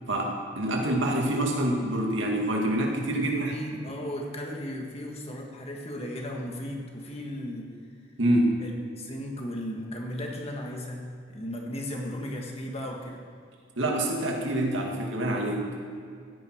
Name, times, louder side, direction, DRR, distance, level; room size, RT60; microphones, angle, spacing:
voice 1, 0.1-3.5 8.2-8.6 13.8-15.8, right 1 dB, 90° right, 0 dB, 2.1 m, -26 dB
voice 2, 3.1-7.7 8.6-13.2, left 1 dB, 35° left, 0 dB, 1.8 m, -36 dB
15.5 x 10.0 x 4.6 m, 2.2 s
head